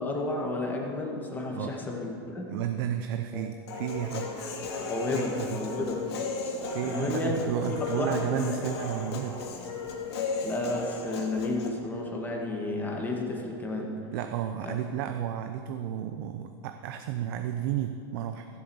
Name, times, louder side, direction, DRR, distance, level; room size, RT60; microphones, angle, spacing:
voice 1, 0.0-2.5 3.3-3.5 4.9-6.1 6.4-6.6 6.8-7.4 7.7-8.6 10.4-14.0 14.6-14.8, left 2 dB, 15° left, 0 dB, 1.8 m, -32 dB
voice 2, 2.5-4.3 4.6-4.9 5.1-5.6 6.7-9.4 14.1-18.5, right 10 dB, 60° right, 7 dB, 0.7 m, -32 dB
Human voice, 3.7-11.7, left 4 dB, 80° left, 2.4 m, -35 dB
14.5 x 8.3 x 7.1 m, 2.5 s
supercardioid pair, 145°, 13 cm